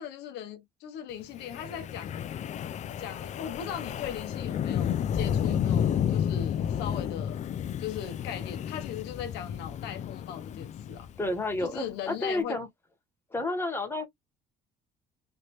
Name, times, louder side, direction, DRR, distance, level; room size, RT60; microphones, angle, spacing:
voice 1, 0.0-2.2 3.0-7.4 7.8-11.1 11.6-12.6, left 9 dB, 85° left, 0.8 m, -39 dB
Wind, 1.4-11.6, left 9 dB, 45° left, 0.4 m, -31 dB
voice 2, 11.2-12.7 13.3-14.1, left 2 dB, 15° left, 1.2 m, -30 dB
3.2 x 2.6 x 3.0 m
cardioid pair, 110°, 17 cm